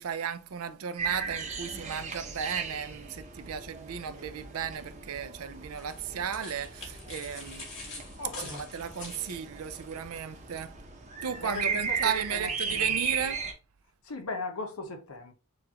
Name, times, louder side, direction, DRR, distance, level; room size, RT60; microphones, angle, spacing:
voice 1, 0.0-7.7 8.4-10.7 11.2-13.4, right 7 dB, 70° right, 0.5 m, -35 dB
sound 1, 1.0-13.5, right 5 dB, 30° right, 0.8 m, -36 dB
sound 2, 5.8-9.8, left 3 dB, 55° left, 2.6 m, -44 dB
voice 2, 8.2-8.6 11.4-12.0 12.3-13.3 14.0-15.3, left 3 dB, 75° left, 1.0 m, -39 dB
6.8 x 2.5 x 2.9 m
head